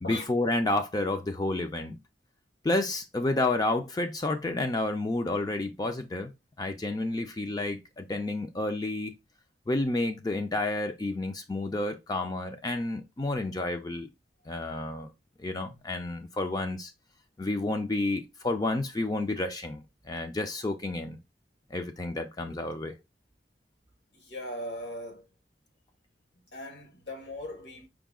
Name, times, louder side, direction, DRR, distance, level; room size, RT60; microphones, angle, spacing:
voice 1, 0.0-2.0 2.6-6.3 6.6-9.2 9.7-14.1 14.5-15.1 15.4-16.9 17.4-21.2 21.7-22.9, left 2 dB, 20° left, 0.4 m, -30 dB
voice 2, 24.1-25.3 26.5-27.9, left 1 dB, 75° left, 1.4 m, -39 dB
4.8 x 2.3 x 3.5 m
head